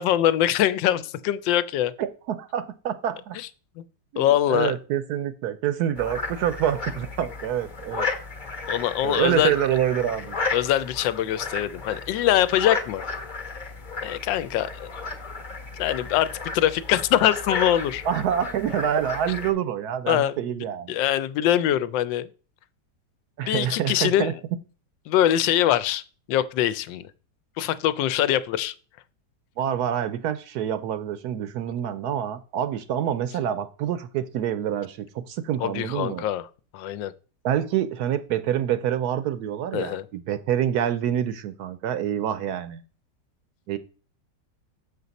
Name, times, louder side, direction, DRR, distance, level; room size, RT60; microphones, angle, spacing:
voice 1, 0.0-1.9 3.8-3.9 4.2-4.7 8.7-9.5 10.5-13.0 14.0-14.9 15.8-18.0 20.1-20.3 20.9-22.3 23.5-24.3 25.1-26.0 26.3-27.1 27.6-28.7 35.6-36.5 36.7-37.1 39.7-40.0, left 12 dB, 85° left, 1.3 m, -23 dB
voice 2, 2.0-3.4 4.1-8.1 9.0-10.4 18.0-20.9 23.4-24.3 29.6-36.3 37.4-42.8 43.7-43.8, right 10 dB, 70° right, 1.0 m, -27 dB
sound 1, 5.9-19.5, left 4 dB, 35° left, 0.9 m, -33 dB
6.8 x 6.5 x 4.0 m
omnidirectional pair, 2.0 m